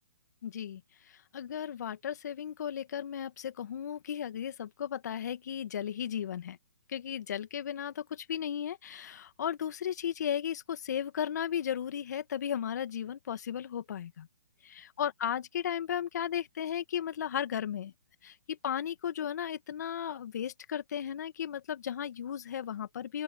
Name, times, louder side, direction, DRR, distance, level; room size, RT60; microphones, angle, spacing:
voice 1, 0.4-0.8 1.1-6.6 6.9-14.3 14.6-17.9 18.2-23.2, left 9 dB, 60° left, 1.8 m, -35 dB
open air
hypercardioid pair, 140°, 11 cm